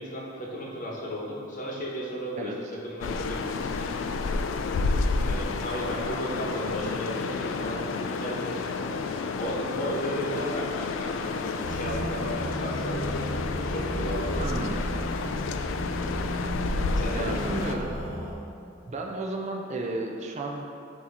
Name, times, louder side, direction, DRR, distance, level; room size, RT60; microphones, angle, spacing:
voice 1, 0.0-3.7 5.2-9.0 9.3-14.5 16.9-17.4, equal, 40° left, -3 dB, 1.1 m, -34 dB
sound 1, 3.0-17.8, left 4 dB, 70° left, 0.3 m, -30 dB
sound 2, 11.6-18.3, equal, 85° right, 1.3 m, -33 dB
voice 2, 14.4-14.8 17.1-18.1 18.9-20.6, right 2 dB, 35° right, 1 dB, 0.5 m, -33 dB
8.7 x 2.9 x 4.1 m, 2.6 s
head